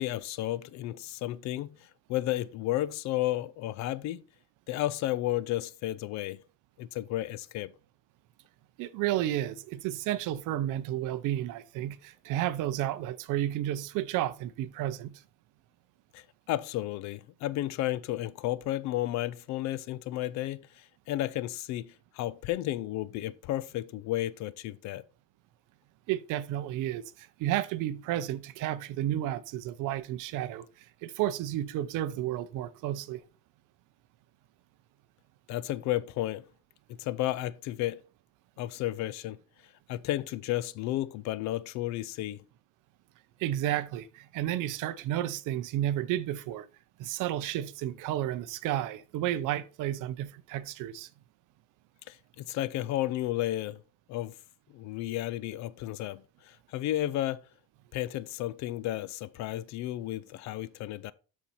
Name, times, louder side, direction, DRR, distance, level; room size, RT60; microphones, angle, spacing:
voice 1, 0.0-4.2 4.7-6.4 6.8-7.7 16.1-25.0 35.5-36.5 37.0-38.0 38.6-39.4 39.9-42.4 52.1-53.8 54.1-54.3 54.7-57.5 57.9-61.1, left 14 dB, 45° left, 0.4 m, -33 dB
voice 2, 8.8-15.2 26.1-30.7 31.0-33.2 43.4-46.7 47.0-51.1, right 13 dB, 50° right, 0.7 m, -32 dB
12.5 x 4.4 x 4.3 m
cardioid pair, 150°, 40 cm